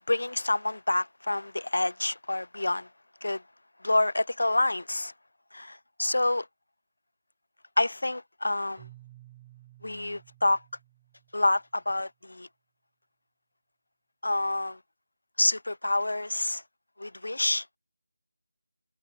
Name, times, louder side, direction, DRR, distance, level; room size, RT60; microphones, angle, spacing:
voice 1, 0.1-2.9 3.2-3.4 3.8-5.1 5.5-6.5 7.8-8.9 9.8-10.6 11.3-12.5 14.2-14.8 15.4-16.6 17.0-17.6, left 2 dB, 85° left, 0.6 m, -27 dB
Keyboard (musical), 8.8-11.7, right 16 dB, 10° right, 3.5 m, -54 dB
figure-of-eight pair, 175°, 0 cm